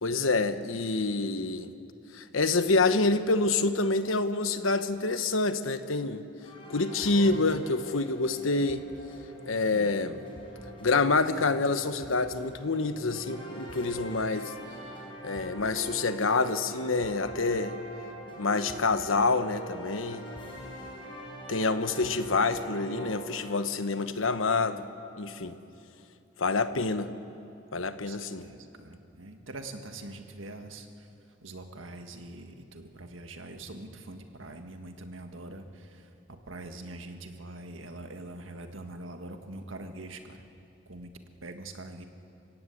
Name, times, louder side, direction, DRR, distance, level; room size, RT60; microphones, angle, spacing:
voice 1, 0.0-1.7 2.1-6.2 6.7-8.8 9.4-10.2 10.8-14.5 15.2-17.8 18.4-20.2 21.5-24.9 25.2-25.6 26.4-27.1 27.7-28.4, left 3 dB, 90° left, 10 dB, 1.1 m, -27 dB
sound 1, 6.4-23.5, right 1 dB, 25° left, 5.7 m, -43 dB
voice 2, 9.7-10.1 28.0-31.1 31.4-40.4 40.9-41.1 41.4-42.1, right 2 dB, 80° right, 6 dB, 1.7 m, -43 dB
29.0 x 16.5 x 8.5 m, 2.7 s
head